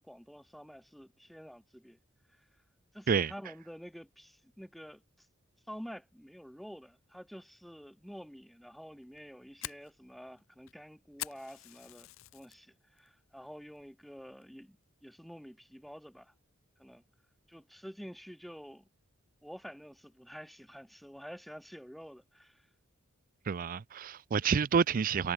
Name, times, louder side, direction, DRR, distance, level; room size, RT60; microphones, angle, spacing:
voice 1, 0.0-2.0 2.3-2.5 2.9-5.3 5.7-16.3 16.8-17.0 17.5-18.9 19.4-22.7, equal, ahead, 0.8 m, -49 dB
Fire, 9.0-12.6 13.0-13.4 13.8-13.9 14.4-14.8, left 15 dB, 70° left, 0.5 m, -45 dB
voice 2, 23.5-25.3, right 6 dB, 40° right, 0.4 m, -28 dB
head